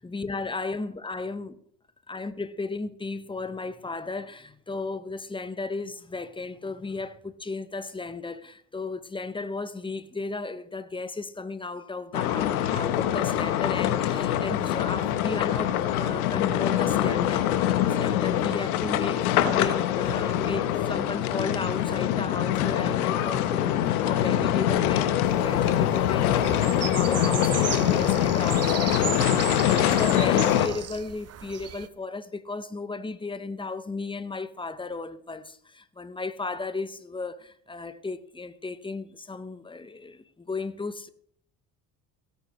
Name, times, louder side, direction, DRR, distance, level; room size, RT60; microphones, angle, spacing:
voice 1, 0.1-1.6 2.1-41.1, left 3 dB, 10° left, 1.0 m, -35 dB
sound 1, 12.1-30.7, left 11 dB, 80° left, 1.2 m, -24 dB
sound 2, 25.2-31.9, right 10 dB, 35° right, 0.8 m, -36 dB
17.0 x 9.3 x 3.3 m
hypercardioid pair, 60°, 43 cm